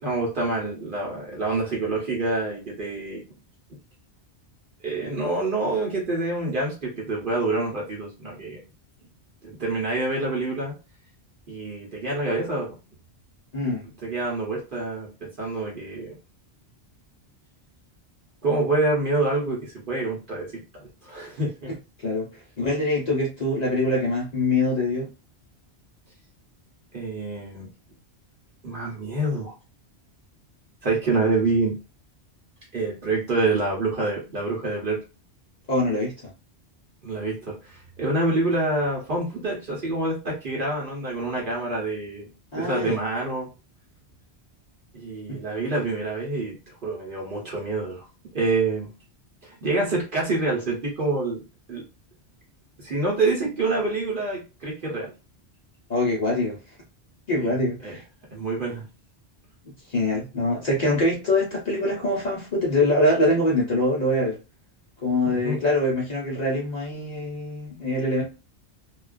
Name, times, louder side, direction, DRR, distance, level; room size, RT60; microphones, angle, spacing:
voice 1, 0.0-3.3 4.8-8.6 9.4-10.7 11.5-12.7 14.0-16.1 18.4-20.5 20.8-21.7 26.9-27.7 28.6-29.5 30.8-31.7 32.7-35.0 37.0-42.3 42.5-43.5 44.9-48.1 48.3-48.9 49.4-51.4 51.7-51.8 52.8-55.1 57.4-57.6 57.8-58.0 58.3-58.8 65.2-65.6 67.7-67.8, right 2 dB, 55° right, 0.9 m, -27 dB
voice 2, 13.5-13.8 22.0-25.1 35.7-36.3 42.5-43.0 45.3-45.4 55.9-56.6 57.3-58.0 59.9-64.4 65.0-68.2, left 1 dB, 45° left, 0.7 m, -24 dB
2.3 x 2.3 x 2.3 m
omnidirectional pair, 1.1 m